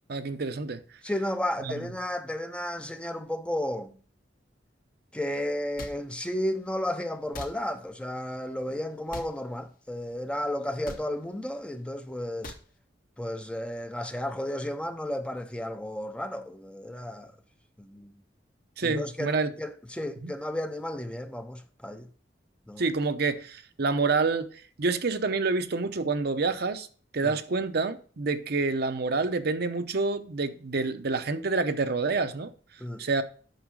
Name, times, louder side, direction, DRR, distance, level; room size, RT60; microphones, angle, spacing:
voice 1, 0.1-0.8 1.8-1.9 18.8-19.5 20.2-20.3 22.8-24.5 24.8-26.9 27.1-32.5 33.0-33.2, right 4 dB, 60° right, 0.8 m, -27 dB
voice 2, 1.0-4.0 5.1-12.5 13.2-17.3 17.8-18.2 18.8-22.1 22.7-22.8 27.2-27.4 32.8-33.0, left 1 dB, 5° left, 0.6 m, -33 dB
sound 1, 5.8-6.0 7.3-7.5 9.1-9.3 10.8-11.0 12.4-12.6, left 1 dB, 50° left, 1.1 m, -39 dB
9.1 x 5.9 x 4.7 m
head